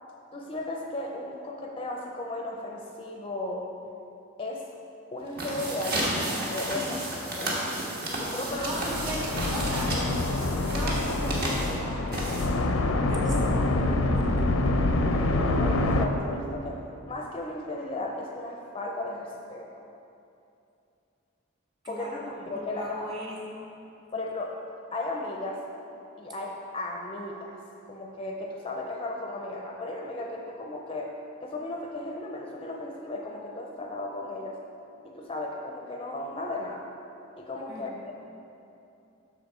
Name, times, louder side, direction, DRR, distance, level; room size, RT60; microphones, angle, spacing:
voice 1, 0.3-3.7 4.4-4.7 5.1-7.6 8.2-8.8 15.1-19.8 21.9-22.2 22.5-23.0 24.1-24.6 24.9-25.6 26.2-27.6 27.8-31.1 31.4-34.6 35.0-36.8 37.4-38.2, left 2 dB, 25° left, 1 dB, 0.5 m, -35 dB
sound 1, 5.2-12.8, right 1 dB, 50° right, 1.4 m, -32 dB
sound 2, 8.5-16.1, left 2 dB, 80° left, 0.5 m, -26 dB
voice 2, 8.5-9.9 10.6-12.5 13.1-13.6 14.0-14.5 21.8-22.2 22.5-23.7 37.7-38.0, equal, 20° right, -3 dB, 1.3 m, -37 dB
6.9 x 6.3 x 4.2 m, 2.8 s
head